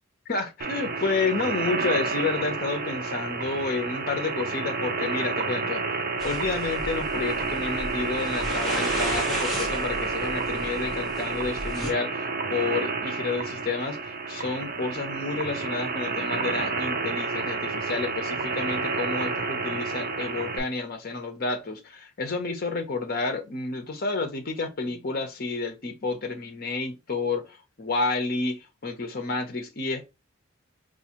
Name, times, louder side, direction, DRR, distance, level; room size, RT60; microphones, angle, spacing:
voice 1, 0.3-5.8 6.2-30.1, left 3 dB, 45° left, 0.7 m, -30 dB
sound 1, 0.6-20.6, right 4 dB, 45° right, 0.6 m, -30 dB
sound 2, 6.2-11.9, equal, ahead, 0.9 m, -36 dB
4.6 x 2.5 x 2.9 m
head